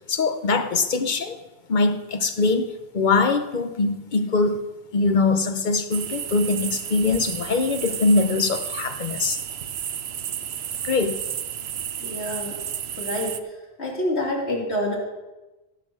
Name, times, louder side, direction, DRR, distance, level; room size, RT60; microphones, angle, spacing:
voice 1, 0.1-1.4 1.7-2.7 2.9-4.6 4.9-9.4 10.8-11.2, left 3 dB, 50° left, 8 dB, 1.0 m, -22 dB
sound 1, 5.9-13.4, right 9 dB, 70° right, 0.9 m, -32 dB
voice 2, 12.0-12.6 12.9-13.4 13.8-14.9, left 1 dB, 75° left, -3 dB, 3.3 m, -27 dB
17.5 x 6.1 x 6.2 m, 1.1 s
omnidirectional pair, 1.1 m